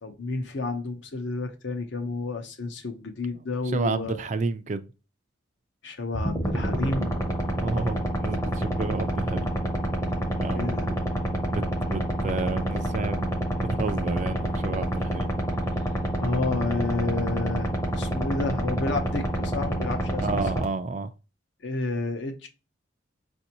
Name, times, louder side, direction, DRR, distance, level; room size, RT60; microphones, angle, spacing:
voice 1, 0.0-4.2 5.8-7.2 10.6-10.9 16.2-20.4 21.6-22.5, left 3 dB, 60° left, 0.7 m, -30 dB
voice 2, 3.3-4.9 7.6-9.5 10.1-10.9 11.5-13.3 13.6-15.3 15.8-15.9 20.2-21.1, right 3 dB, 35° right, 0.3 m, -31 dB
sound 1, 6.1-20.6, right 1 dB, 15° left, 0.7 m, -28 dB
5.2 x 2.6 x 2.8 m
head